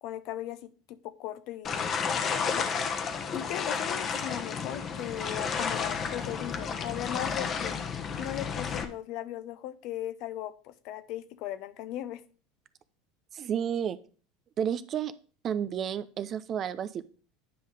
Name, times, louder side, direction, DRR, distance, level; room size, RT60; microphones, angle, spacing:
voice 1, 0.0-2.7 3.3-7.8 8.2-12.2, left 12 dB, 55° left, 12 dB, 0.7 m, -38 dB
sound 1, 1.6-8.8, left 6 dB, 40° left, 1.1 m, -32 dB
voice 2, 13.3-14.0 14.6-15.1 15.4-17.0, right 8 dB, 40° right, 14 dB, 0.7 m, -31 dB
9.6 x 5.5 x 3.3 m, 0.39 s
hypercardioid pair, 80°, 0 cm